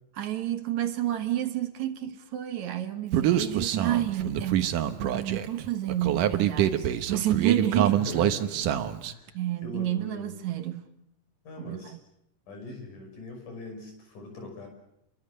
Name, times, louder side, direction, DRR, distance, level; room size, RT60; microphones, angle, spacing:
voice 1, 0.2-4.7 5.0-8.0 9.3-10.9 11.6-12.0, right 12 dB, 65° right, 2.5 m, -30 dB
Human voice, 3.1-9.1, right 11 dB, 85° right, 2.7 m, -26 dB
voice 2, 7.9-9.3 9.6-10.4 11.5-12.0 12.5-14.7, left 3 dB, 75° left, 7.4 m, -41 dB
28.5 x 23.0 x 6.6 m
omnidirectional pair, 3.7 m